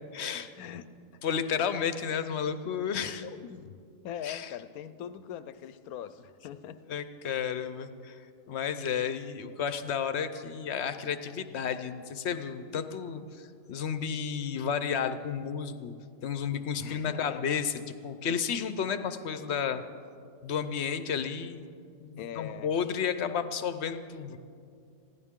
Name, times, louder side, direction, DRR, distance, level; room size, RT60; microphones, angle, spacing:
voice 1, 0.1-0.5 1.2-3.3 4.2-4.5 6.9-15.9 16.2-19.8 20.4-21.6 22.0-24.4, left 7 dB, 55° left, 10 dB, 0.9 m, -32 dB
voice 2, 3.2-3.8 4.0-6.8 7.2-7.4 16.8-17.4 22.2-22.7, left 9 dB, 90° left, 13 dB, 1.1 m, -42 dB
21.0 x 15.5 x 3.7 m, 2.4 s
omnidirectional pair, 1.5 m